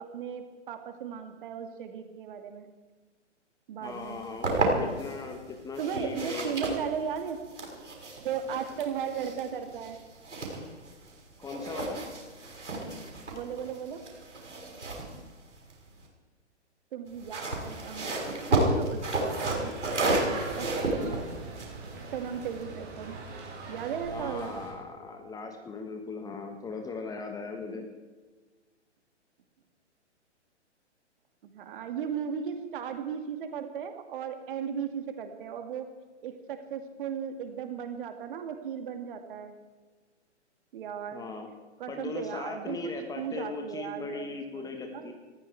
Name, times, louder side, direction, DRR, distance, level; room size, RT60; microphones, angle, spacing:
voice 1, 0.0-2.7 3.7-4.2 5.8-7.4 8.2-10.0 13.3-14.0 16.9-18.1 18.5-19.8 20.6-21.2 22.1-23.2 23.7-24.5 31.5-35.9 36.2-39.5 40.7-41.3 41.8-45.1, right 7 dB, 45° right, 7 dB, 2.3 m, -36 dB
voice 2, 3.8-6.5 11.4-12.0 24.1-27.9 41.1-41.5 41.9-45.1, left 4 dB, 10° left, 4 dB, 1.5 m, -38 dB
sound 1, 4.0-5.2 5.7-11.1 11.4-16.1 17.1-22.6, right 2 dB, 75° right, 6.2 m, -32 dB
sound 2, 19.3-24.7, right 3 dB, 25° right, 4.9 m, -40 dB
19.5 x 15.0 x 4.7 m, 1.4 s
figure-of-eight pair, 125°, 36 cm